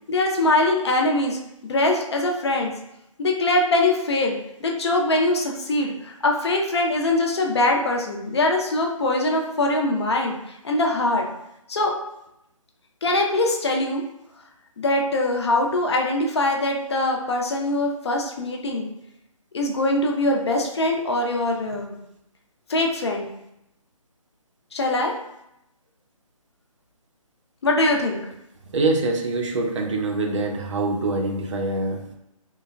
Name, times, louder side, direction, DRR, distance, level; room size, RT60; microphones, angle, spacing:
voice 1, 0.1-2.7 3.2-10.4 10.6-11.2 11.7-11.9 13.0-14.0 14.8-18.9 19.5-21.9 22.7-23.3 24.7-25.1 27.6-28.2, left 2 dB, 50° left, 1 dB, 0.4 m, -22 dB
voice 2, 28.7-32.1, right 2 dB, 55° right, 2 dB, 0.5 m, -24 dB
3.1 x 2.0 x 2.2 m, 0.82 s
figure-of-eight pair, 150°, 18 cm